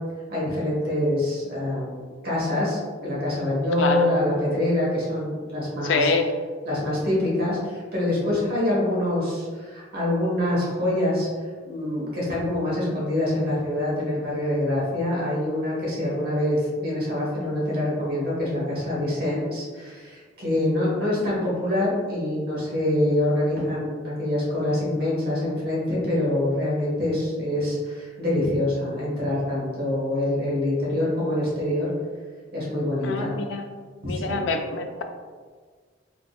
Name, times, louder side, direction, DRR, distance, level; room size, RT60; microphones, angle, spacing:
voice 1, 0.3-6.1 6.6-11.3 11.6-31.9 32.5-33.3 34.0-34.4, left 1 dB, 55° right, -6 dB, 1.1 m, -25 dB
voice 2, 5.8-6.3 8.2-8.3 33.0-33.6 34.0-35.0, left 3 dB, 80° left, 5 dB, 0.4 m, -25 dB
3.6 x 2.6 x 2.2 m, 1.5 s
head